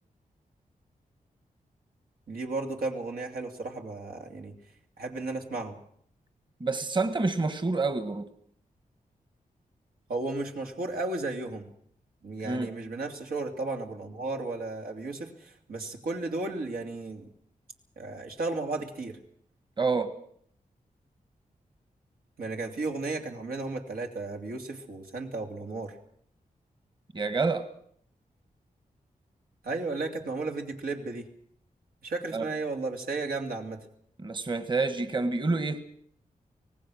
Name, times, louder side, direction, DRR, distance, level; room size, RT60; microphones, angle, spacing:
voice 1, 2.3-4.5 5.0-5.8 10.1-11.7 12.2-17.3 18.0-19.2 22.4-26.0 29.6-31.3 32.0-33.8, right 3 dB, 85° right, 2 dB, 2.9 m, -34 dB
voice 2, 6.6-8.3 12.4-12.7 19.8-20.1 27.1-27.7 32.3-32.5 34.2-35.8, right 3 dB, 35° right, 10 dB, 1.5 m, -28 dB
25.0 x 18.5 x 6.3 m, 0.64 s
wide cardioid pair, 100°, 15 cm